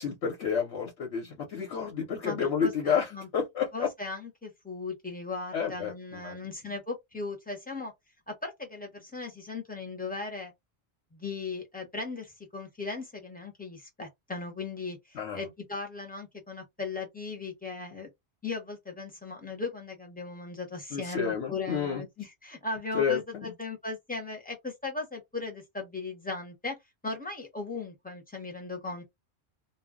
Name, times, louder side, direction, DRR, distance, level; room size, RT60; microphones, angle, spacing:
voice 1, 0.0-3.9 5.5-6.4 15.1-15.4 20.9-22.0 22.9-23.5, left 7 dB, 85° left, 1.1 m, -30 dB
voice 2, 2.2-3.3 3.7-7.9 8.3-10.5 11.1-18.1 18.4-26.8 27.0-29.0, left 3 dB, 10° left, 0.8 m, -37 dB
2.3 x 2.0 x 3.6 m
omnidirectional pair, 1.1 m